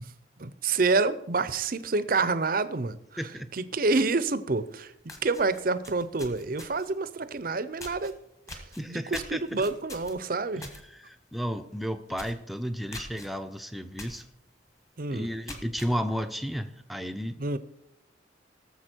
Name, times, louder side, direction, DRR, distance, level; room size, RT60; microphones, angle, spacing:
voice 1, 0.4-3.0 3.5-8.1 8.5-8.6 8.9-10.6 15.0-15.3 17.4-17.6, right 3 dB, 50° right, 14 dB, 0.7 m, -28 dB
voice 2, 3.2-3.5 8.8-9.6 10.6-14.2 15.1-17.4, equal, ahead, 8 dB, 0.6 m, -33 dB
sound 1, 4.6-4.7 5.0-7.0 7.8-8.1 8.5-10.8 11.2-11.4 11.7-11.8 12.1-12.4 12.9-13.3 14.0-14.2 14.7-14.8 15.3-15.9, left 1 dB, 15° left, 1.4 m, -43 dB
18.0 x 7.1 x 4.5 m, 0.78 s
head